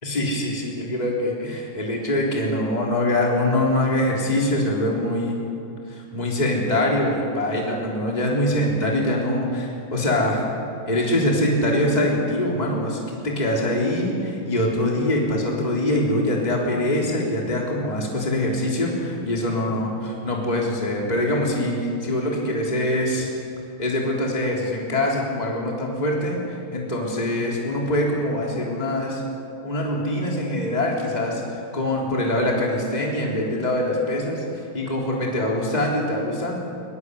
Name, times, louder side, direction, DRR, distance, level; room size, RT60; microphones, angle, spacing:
voice 1, 0.0-5.4 5.9-10.5 10.9-23.3 23.8-29.2 29.6-31.4 31.7-34.5 34.7-36.5, left 1 dB, 15° left, -2 dB, 3.6 m, -23 dB
22.5 x 21.0 x 8.1 m, 2.5 s
omnidirectional pair, 3.3 m